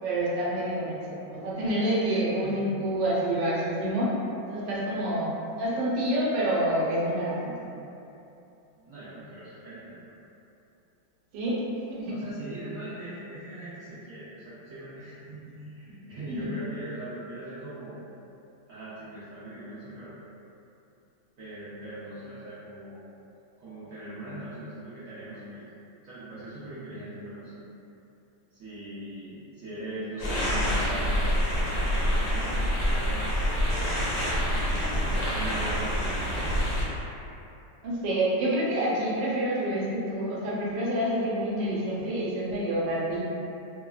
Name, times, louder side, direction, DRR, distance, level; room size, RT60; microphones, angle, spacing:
voice 1, 0.0-4.1 4.5-7.7 11.3-11.6 11.9-12.1 16.3-16.5 37.8-43.3, right 1 dB, 85° right, -6 dB, 1.3 m, -28 dB
voice 2, 2.4-3.0 8.7-9.9 12.1-18.0 18.7-20.1 21.4-23.0 23.6-25.7 26.0-27.6 28.5-31.3 31.9-33.6 34.5-36.4, right 1 dB, 70° right, -12 dB, 0.8 m, -40 dB
sound 1, 30.2-36.8, equal, 65° left, 1.0 m, -26 dB
3.0 x 2.0 x 2.3 m, 2.8 s
omnidirectional pair, 2.0 m